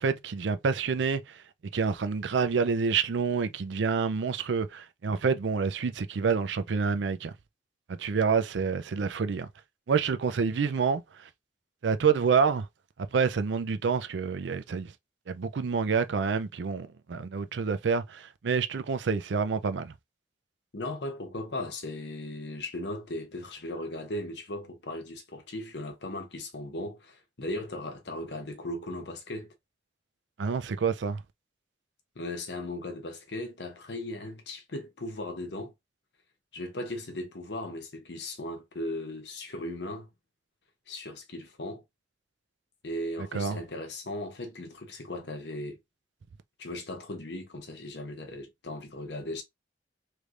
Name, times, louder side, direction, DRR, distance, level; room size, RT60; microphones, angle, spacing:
voice 1, 0.0-1.4 1.7-7.3 7.9-9.5 9.9-11.3 11.8-12.7 13.1-14.9 15.3-19.9 30.4-31.2 43.2-43.6, right 5 dB, 85° right, 0.4 m, -28 dB
voice 2, 20.7-29.5 32.1-35.7 36.5-40.1 40.9-41.8 42.8-45.8 46.6-49.4, left 1 dB, 70° left, 1.0 m, -37 dB
3.2 x 3.2 x 2.5 m
head